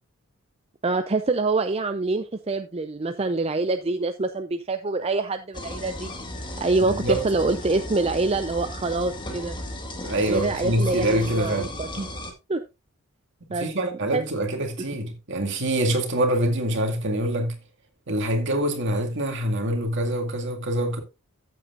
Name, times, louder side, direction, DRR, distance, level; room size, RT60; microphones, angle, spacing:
voice 1, 0.8-6.1 6.6-9.6 10.3-12.1 12.5-12.6 13.5-13.7 14.1-14.2, right 3 dB, 30° right, 0.5 m, -25 dB
sound 1, 5.5-12.3, left 1 dB, 20° left, 1.7 m, -35 dB
voice 2, 6.8-7.2 10.0-11.7 13.5-17.5 18.1-21.0, right 1 dB, 55° right, 2.1 m, -25 dB
14.0 x 8.1 x 2.5 m
head